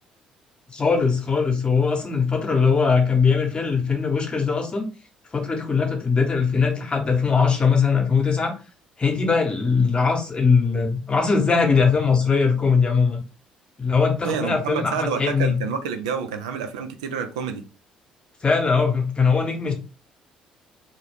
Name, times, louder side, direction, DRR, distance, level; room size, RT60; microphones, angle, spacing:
voice 1, 0.7-4.9 5.3-8.5 9.0-13.2 13.8-15.6 18.4-19.7, left 5 dB, 30° left, 0.9 m, -20 dB
voice 2, 14.2-17.6, right 6 dB, 75° right, 0.3 m, -28 dB
2.2 x 2.1 x 3.3 m
figure-of-eight pair, 50°, 3 cm